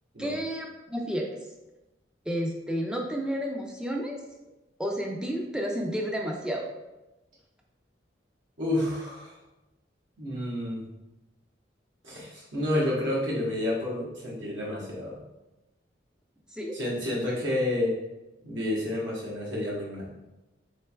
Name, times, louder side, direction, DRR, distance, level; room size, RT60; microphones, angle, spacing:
voice 1, 0.2-1.4 2.3-4.2 4.8-6.7 16.5-16.7, equal, 5° right, 0 dB, 0.4 m, -31 dB
voice 2, 8.6-9.4 10.2-10.8 12.0-15.2 16.7-17.9 18.4-20.2, left 1 dB, 80° right, -5 dB, 1.1 m, -30 dB
4.0 x 3.2 x 2.2 m, 1.0 s
head